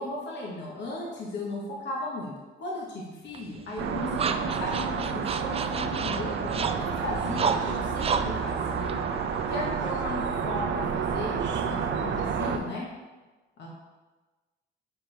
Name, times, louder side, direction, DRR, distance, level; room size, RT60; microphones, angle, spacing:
voice 1, 0.0-2.3 2.6-9.0 9.5-12.9 13.6-13.7, left 2 dB, 60° left, -3 dB, 1.2 m, -36 dB
sound 1, 3.3-9.8, right 6 dB, 30° right, 0.3 m, -33 dB
sound 2, 3.8-12.6, right 6 dB, 70° right, 0.6 m, -30 dB
6.8 x 4.5 x 3.3 m, 1.2 s
cardioid pair, 90°, 20 cm